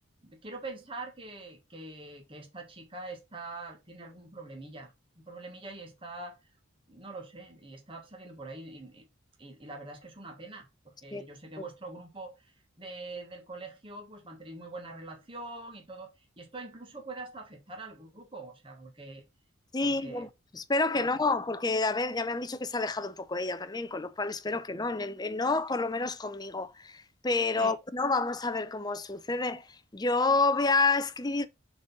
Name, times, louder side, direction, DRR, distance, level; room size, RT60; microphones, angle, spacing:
voice 1, 0.2-6.4 6.9-9.1 9.4-12.5 12.8-19.2 19.8-20.3 20.9-21.1 27.6-27.7, right 2 dB, 25° right, 1.4 m, -44 dB
voice 2, 19.7-31.5, left 3 dB, 20° left, 0.5 m, -29 dB
6.6 x 4.0 x 5.3 m
head